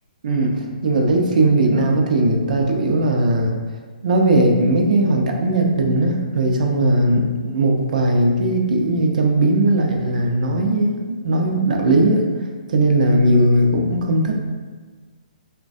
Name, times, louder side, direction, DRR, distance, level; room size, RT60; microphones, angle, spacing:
voice 1, 0.2-3.5 4.0-12.2 12.7-14.4, right 1 dB, 65° right, 1 dB, 0.5 m, -18 dB
3.1 x 2.2 x 2.5 m, 1.4 s
hypercardioid pair, 165°, 5 cm